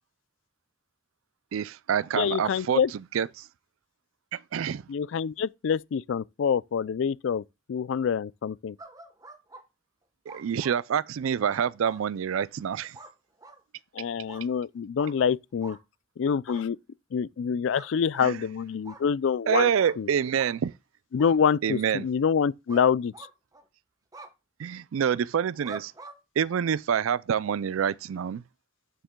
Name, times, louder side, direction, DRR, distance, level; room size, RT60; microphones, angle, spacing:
voice 1, 1.5-2.8 3.1-3.5 4.3-4.8 10.3-13.0 18.2-18.4 19.5-20.7 21.6-22.1 24.6-25.9 26.4-28.4, right 8 dB, 85° right, 0.4 m, -27 dB
voice 2, 2.1-2.9 4.9-7.4 7.7-8.8 13.9-15.8 16.2-16.8 17.1-19.7 20.0-20.1 21.1-23.3, left 7 dB, 65° left, 0.3 m, -26 dB
sound 1, 8.8-9.6 10.3-10.8 11.4-12.0 12.9-13.1 13.4-13.6 14.3-14.4 15.0-15.1 15.6-15.8 16.5-16.6 17.7-18.3 18.8-19.0 19.8-20.0 20.4-20.5 21.2-21.4 22.7-22.9 23.1-23.7 24.1-24.3 25.6-26.2, right 3 dB, 15° right, 1.0 m, -44 dB
8.9 x 7.3 x 2.2 m
head